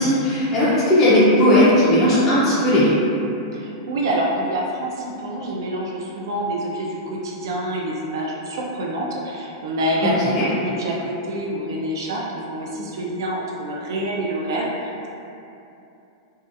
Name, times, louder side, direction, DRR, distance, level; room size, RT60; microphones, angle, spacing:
voice 1, 0.0-3.0 10.0-10.5, left 1 dB, 25° left, -11 dB, 0.4 m, -17 dB
voice 2, 3.5-15.1, right 1 dB, 75° right, -2 dB, 0.3 m, -26 dB
2.7 x 2.2 x 2.3 m, 2.8 s
supercardioid pair, 165°, 2 cm